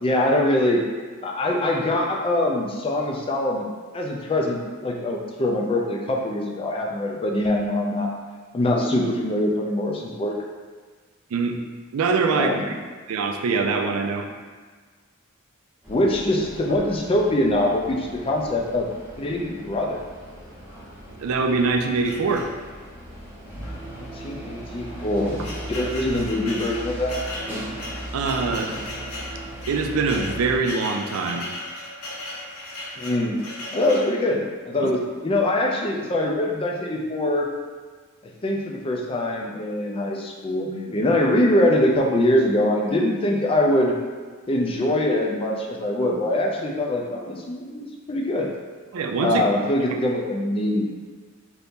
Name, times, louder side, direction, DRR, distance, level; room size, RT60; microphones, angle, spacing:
voice 1, 0.0-0.8 1.2-8.1 8.5-10.4 12.3-12.7 15.9-18.9 19.2-20.0 24.0-27.2 33.0-33.4 33.7-37.5 38.2-43.9 44.5-48.5 49.2-50.8, left 1 dB, 25° left, 0 dB, 0.4 m, -23 dB
voice 2, 11.9-12.7 13.1-14.3 21.2-22.5 28.1-28.7 29.7-31.5 34.8-34.9 48.9-49.4, right 4 dB, 70° right, 3 dB, 0.4 m, -23 dB
sound 1, 15.8-30.6, right 1 dB, 5° right, 0.8 m, -38 dB
sound 2, 22.0-22.9 23.6-23.8 24.0-24.1 24.8-34.2, left 1 dB, 80° left, 0.7 m, -36 dB
2.8 x 2.6 x 3.5 m, 1.4 s
head